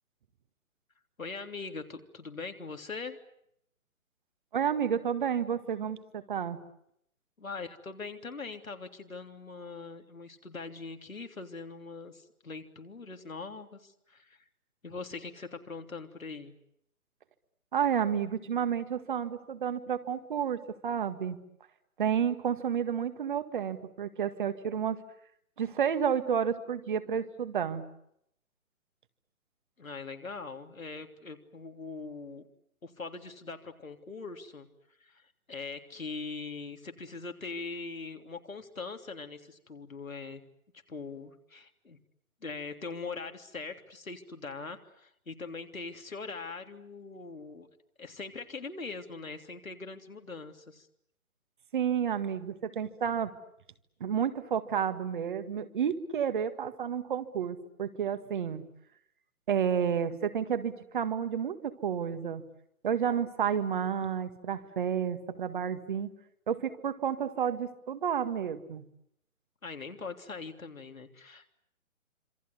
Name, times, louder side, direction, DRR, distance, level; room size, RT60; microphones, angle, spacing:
voice 1, 1.2-3.2 7.4-14.4 14.8-16.5 29.8-32.4 32.8-34.7 35.0-40.4 40.9-42.0 42.4-47.7 48.0-50.9 69.6-71.5, left 4 dB, 70° left, 6 dB, 3.3 m, -42 dB
voice 2, 4.5-6.6 17.7-21.4 22.0-25.0 25.6-27.8 51.7-53.3 54.0-58.6 59.5-62.4 62.8-66.1 66.5-68.8, right 8 dB, 35° right, 10 dB, 1.8 m, -31 dB
26.5 x 26.5 x 8.0 m, 0.74 s
figure-of-eight pair, 135°, 42 cm